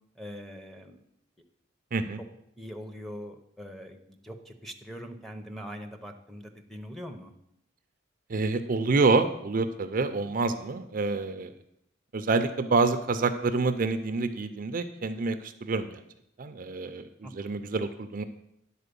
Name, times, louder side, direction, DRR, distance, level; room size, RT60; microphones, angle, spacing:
voice 1, 0.2-1.0 2.6-7.3 17.2-17.6, equal, ahead, 3 dB, 0.7 m, -42 dB
voice 2, 8.3-11.5 12.1-16.0 16.4-17.1 17.3-18.2, right 3 dB, 45° right, 9 dB, 0.5 m, -27 dB
10.0 x 4.3 x 6.8 m, 0.78 s
head